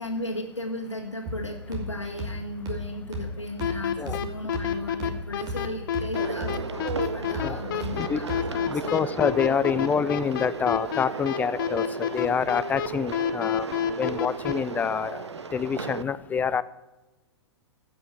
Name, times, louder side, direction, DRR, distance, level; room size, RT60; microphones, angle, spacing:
voice 1, 0.0-8.9 15.5-16.0, left 1 dB, 85° left, -1 dB, 1.7 m, -36 dB
sound 1, 1.3-8.8, equal, 25° right, 2.7 m, -36 dB
sound 2, 3.6-14.5, left 9 dB, 50° left, 1.0 m, -28 dB
sound 3, 6.1-16.0, right 5 dB, 75° right, 0.9 m, -36 dB
voice 2, 8.5-13.7 14.0-15.2 15.5-16.6, left 6 dB, 10° left, 16 dB, 0.4 m, -27 dB
15.0 x 6.1 x 7.5 m, 1.1 s
figure-of-eight pair, 105°, 15 cm